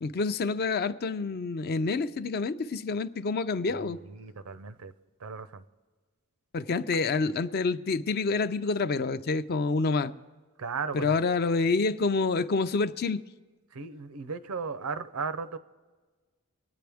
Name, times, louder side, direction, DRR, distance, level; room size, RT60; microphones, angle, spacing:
voice 1, 0.0-4.0 6.5-10.1 10.9-13.2, left 4 dB, 45° left, 12 dB, 0.4 m, -28 dB
voice 2, 4.0-4.9 5.2-5.6 10.6-11.2 13.7-15.6, right 5 dB, 90° right, 13 dB, 0.6 m, -36 dB
24.5 x 9.4 x 3.5 m, 1.4 s
head